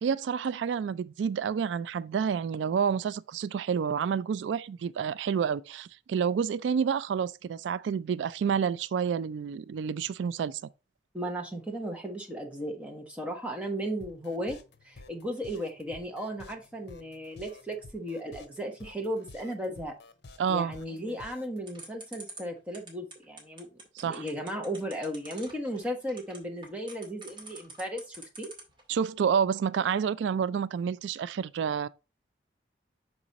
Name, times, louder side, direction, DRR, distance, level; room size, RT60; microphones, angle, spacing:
voice 1, 0.0-10.6 20.4-20.7 24.0-24.2 28.9-31.9, right 7 dB, 90° right, 0.3 m, -29 dB
voice 2, 11.1-14.6 14.8-19.9 20.5-23.7 24.0-28.5, equal, 5° right, 1.2 m, -35 dB
sound 1, 14.0-21.6, left 3 dB, 70° left, 0.8 m, -50 dB
sound 2, 21.7-28.8, right 3 dB, 30° right, 2.4 m, -45 dB
6.2 x 4.8 x 4.0 m
head